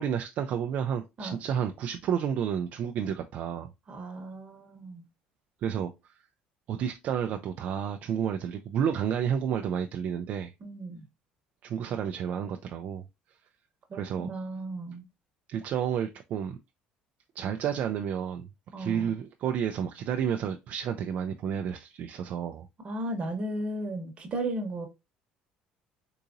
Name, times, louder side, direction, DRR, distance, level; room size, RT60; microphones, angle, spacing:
voice 1, 0.0-3.7 5.6-5.9 6.7-10.5 11.6-13.1 13.9-14.3 15.5-16.6 17.4-18.5 18.8-22.7, right 8 dB, 55° right, 0.3 m, -31 dB
voice 2, 3.9-5.0 10.6-11.0 13.9-15.0 18.7-19.2 22.8-24.9, right 1 dB, 35° right, 1.0 m, -35 dB
3.8 x 2.8 x 2.5 m
cardioid pair, 105°, 3 cm